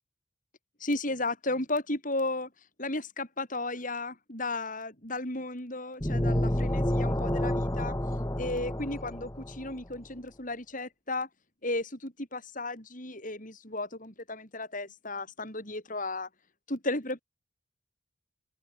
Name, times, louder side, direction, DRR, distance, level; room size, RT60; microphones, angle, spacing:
voice 1, 0.8-2.5 2.8-7.9 8.4-11.3 11.6-16.3 16.7-17.2, left 2 dB, 40° left, 6.7 m, -34 dB
sound 1, 6.0-9.7, left 1 dB, 15° left, 1.3 m, -29 dB
head